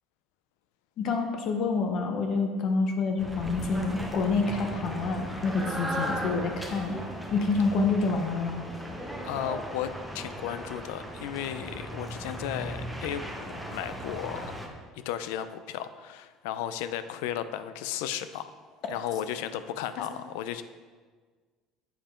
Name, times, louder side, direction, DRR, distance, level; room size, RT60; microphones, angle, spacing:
voice 1, 1.0-7.0 7.3-8.6, left 4 dB, 45° left, 4 dB, 0.8 m, -27 dB
sound 1, 3.2-14.7, equal, ahead, 0.7 m, -37 dB
voice 2, 9.2-14.5 15.1-18.5 18.9-20.6, left 10 dB, 90° left, 12 dB, 0.4 m, -34 dB
7.5 x 5.1 x 4.4 m, 1.5 s
cardioid pair, 160°, 0 cm